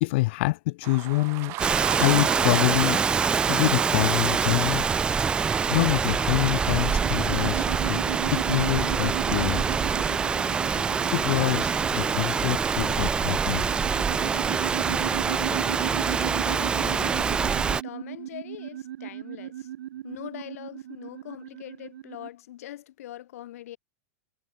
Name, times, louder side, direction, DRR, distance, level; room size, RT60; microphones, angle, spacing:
voice 1, 0.0-1.5 1.9-3.0 3.5-4.9 5.7-8.0 8.3-9.6 11.1-13.7, left 21 dB, 45° left, 1.0 m, -26 dB
sound 1, 0.8-5.8, right 22 dB, 30° right, 1.7 m, -36 dB
Rain, 1.6-17.8, right 6 dB, 10° right, 1.1 m, -25 dB
sound 2, 6.3-22.3, right 12 dB, 70° right, 6.8 m, -36 dB
voice 2, 15.1-19.7 20.0-23.8, left 13 dB, 65° left, 6.9 m, -43 dB
supercardioid pair, 165°, 9 cm